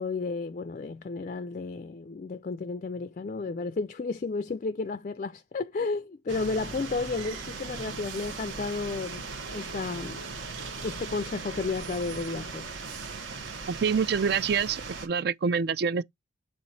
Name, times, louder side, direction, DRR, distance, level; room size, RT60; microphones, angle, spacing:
voice 1, 0.0-9.3 9.5-10.2 10.8-12.7, left 4 dB, 40° left, 0.3 m, -32 dB
sound 1, 6.3-15.1, right 4 dB, 75° right, 1.1 m, -38 dB
voice 2, 13.7-16.0, right 6 dB, 55° right, 0.3 m, -26 dB
7.6 x 3.0 x 4.1 m
head